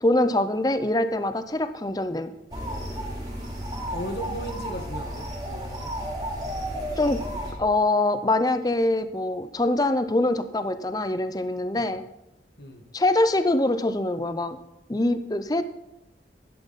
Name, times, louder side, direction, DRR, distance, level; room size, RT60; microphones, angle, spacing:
voice 1, 0.0-2.3 7.0-7.2 7.6-12.0 12.9-14.6 14.9-15.6, left 2 dB, 20° left, 11 dB, 0.6 m, -24 dB
sound 1, 2.5-7.5, equal, 25° right, 3.0 m, -32 dB
voice 2, 3.9-5.9 11.7-12.0 12.6-12.8, equal, 65° left, 5 dB, 1.6 m, -36 dB
12.0 x 11.0 x 4.1 m, 0.88 s
head